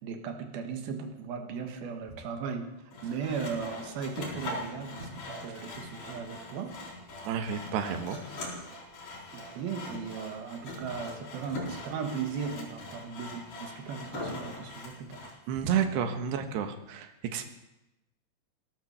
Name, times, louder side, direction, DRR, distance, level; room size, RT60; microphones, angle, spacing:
voice 1, 0.0-2.7 3.0-6.7 9.3-15.2, right 6 dB, 70° right, 6 dB, 3.3 m, -37 dB
Sawing, 2.9-15.4, left 2 dB, 55° left, 5.5 m, -42 dB
voice 2, 7.2-8.2 15.5-17.4, right 8 dB, 90° right, 7 dB, 3.5 m, -31 dB
17.5 x 11.5 x 7.1 m, 0.94 s
omnidirectional pair, 4.7 m